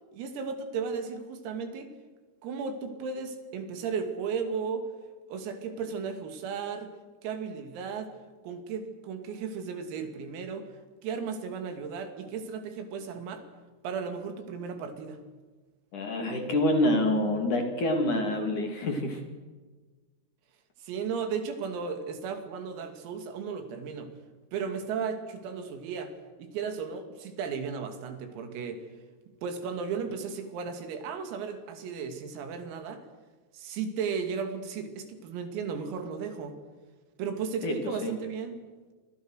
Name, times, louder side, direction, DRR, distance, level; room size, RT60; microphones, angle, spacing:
voice 1, 0.1-1.9 2.4-4.9 5.3-6.9 7.2-8.1 8.4-10.7 11.0-13.4 13.8-15.2 20.8-24.1 24.5-26.1 26.4-28.8 29.4-33.0 33.5-36.6 37.2-38.6, right 6 dB, 85° right, 7 dB, 5.4 m, -35 dB
voice 2, 15.9-19.2 37.6-37.8 38.0-38.1, left 1 dB, 45° left, 4 dB, 3.8 m, -27 dB
28.5 x 25.5 x 6.5 m, 1.3 s
omnidirectional pair, 6.0 m